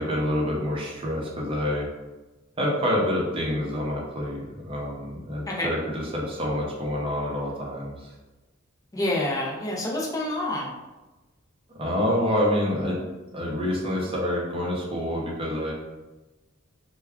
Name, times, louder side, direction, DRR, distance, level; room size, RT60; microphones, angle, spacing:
voice 1, 0.0-1.9 2.6-8.1 11.7-13.0 13.3-15.7, left 1 dB, 25° right, -4 dB, 0.7 m, -27 dB
voice 2, 8.9-10.7, left 1 dB, 15° left, -4 dB, 0.5 m, -27 dB
2.3 x 2.2 x 3.5 m, 1.1 s
head